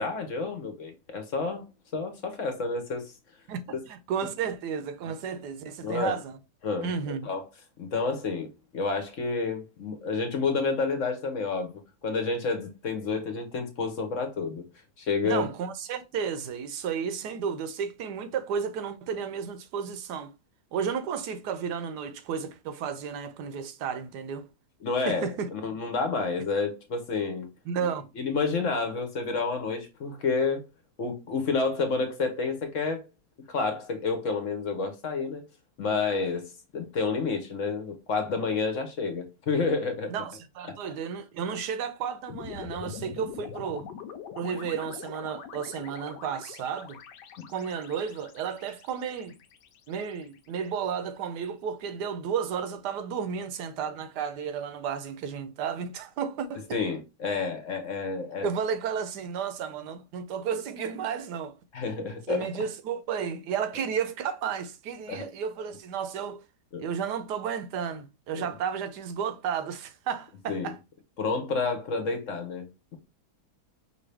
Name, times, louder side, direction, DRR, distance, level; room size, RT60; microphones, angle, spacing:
voice 1, 0.0-1.6 1.9-3.1 3.7-3.8 5.8-6.2 6.6-6.9 7.2-7.4 7.8-14.6 15.0-15.5 24.8-27.5 27.8-27.9 28.2-30.7 31.0-33.0 33.5-35.4 35.8-40.1 40.7-40.8 43.0-43.1 56.7-58.5 61.7-62.6 65.1-65.3 66.7-66.8 68.3-68.5 70.5-70.7 71.2-72.7, left 4 dB, 55° left, 1.1 m, -29 dB
voice 2, 3.5-6.4 6.8-7.3 15.2-20.3 20.7-24.5 25.0-25.5 27.7-28.0 40.1-43.9 44.4-47.0 47.5-49.4 49.9-56.8 58.4-61.5 62.3-66.4 66.8-70.8, right 7 dB, 80° right, 1.3 m, -32 dB
sound 1, 42.3-50.6, left 7 dB, 85° left, 1.3 m, -44 dB
5.2 x 2.7 x 3.3 m
omnidirectional pair, 1.8 m